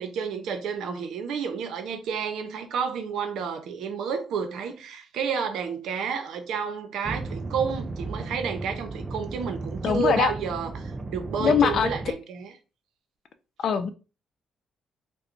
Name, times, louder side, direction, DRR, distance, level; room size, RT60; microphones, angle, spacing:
voice 1, 0.0-12.5, right 6 dB, 80° right, 0.7 m, -30 dB
sound 1, 7.0-12.1, right 3 dB, 25° right, 0.5 m, -35 dB
voice 2, 9.8-10.3 11.4-11.9 13.6-13.9, left 7 dB, 60° left, 0.5 m, -22 dB
4.2 x 2.2 x 2.6 m
cardioid pair, 90°, 0 cm